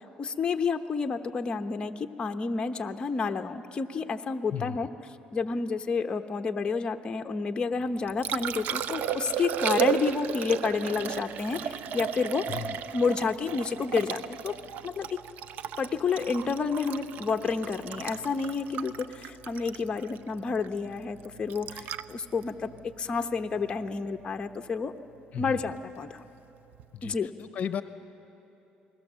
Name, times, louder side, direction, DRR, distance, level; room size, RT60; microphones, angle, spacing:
voice 1, 0.2-4.9 5.3-12.5 12.9-14.6 14.8-15.2 15.8-22.7 23.0-24.9 25.4-26.2 27.0-27.3, left 5 dB, 30° left, 5 dB, 0.9 m, -30 dB
Liquid, 7.8-23.9 26.7-26.9, right 9 dB, 70° right, 0.7 m, -34 dB
voice 2, 26.9-27.8, left 9 dB, 55° left, 11 dB, 0.9 m, -35 dB
29.0 x 20.5 x 7.5 m, 3.0 s
cardioid pair, 110°, 3 cm